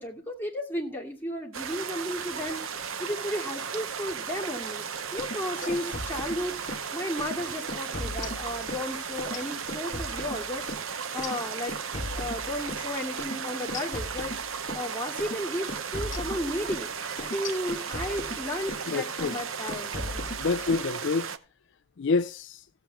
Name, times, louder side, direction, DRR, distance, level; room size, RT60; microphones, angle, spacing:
voice 1, 0.0-11.7 12.2-20.3, left 1 dB, 10° left, 2.5 m, -34 dB
sound 1, 1.5-21.4, right 6 dB, 60° right, 0.8 m, -35 dB
sound 2, 5.1-6.9 7.2-7.4 7.7-8.9 9.2-12.9 13.2-13.4 13.7-14.9 15.2-15.4 15.7-18.9 19.2-19.4 19.7-20.9, left 2 dB, 35° left, 1.5 m, -38 dB
voice 2, 18.9-19.4 20.4-21.3 22.0-22.6, left 4 dB, 55° left, 0.4 m, -27 dB
16.0 x 7.8 x 3.4 m
head